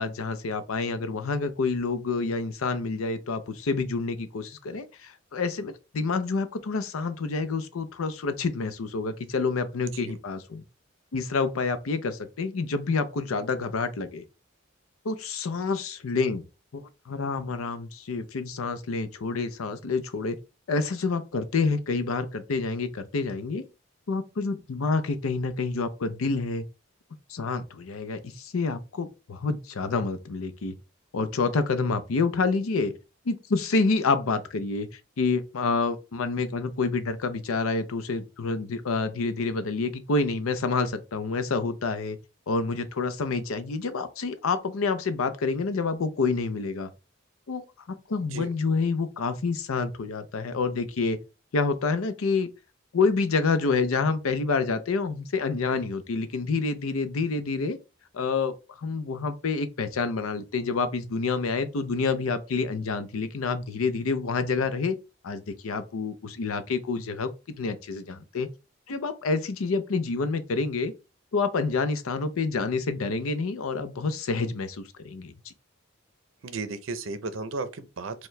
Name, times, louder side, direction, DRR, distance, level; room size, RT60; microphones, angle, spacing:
voice 1, 0.0-10.6 11.1-14.2 15.0-16.4 16.7-20.4 20.7-23.6 24.1-26.6 27.3-30.7 31.1-32.9 33.3-42.2 42.5-46.9 47.5-47.6 48.1-51.2 51.5-52.5 52.9-57.8 58.1-65.0 65.2-68.5 68.9-70.9 71.3-75.5, left 4 dB, 90° left, 0.5 m, -28 dB
voice 2, 76.4-78.3, right 3 dB, 70° right, 0.5 m, -34 dB
4.5 x 2.2 x 3.2 m
head